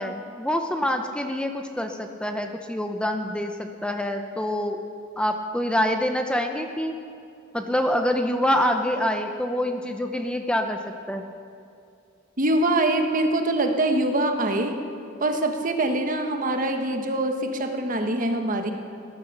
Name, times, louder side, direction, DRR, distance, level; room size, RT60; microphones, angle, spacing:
voice 1, 0.0-4.8 5.2-7.0 7.5-10.8 11.1-11.2, equal, 5° left, 5 dB, 0.7 m, -26 dB
voice 2, 12.4-14.8 15.2-18.7, right 1 dB, 45° right, 5 dB, 1.3 m, -24 dB
19.0 x 11.0 x 6.7 m, 2.5 s
head